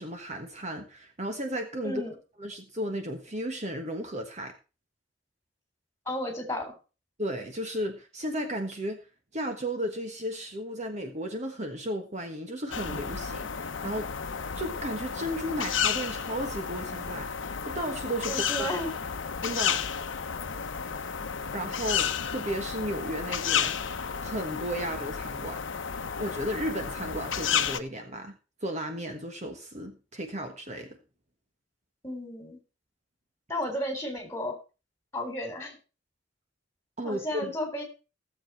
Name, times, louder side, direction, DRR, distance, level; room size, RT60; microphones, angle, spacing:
voice 1, 0.0-2.0 2.4-4.5 7.2-9.0 9.3-14.1 14.5-18.9 19.4-19.8 21.5-23.8 24.2-25.6 26.2-31.0 37.0-37.5, equal, 35° right, 5 dB, 1.4 m, -34 dB
voice 2, 1.8-2.1 6.1-6.8 18.3-18.9 32.0-32.6 33.5-34.6 35.1-35.8 37.0-37.8, left 1 dB, 15° left, 3 dB, 3.9 m, -33 dB
sound 1, 12.7-27.8, left 7 dB, 75° left, 0.9 m, -32 dB
16.5 x 7.4 x 4.5 m, 0.32 s
head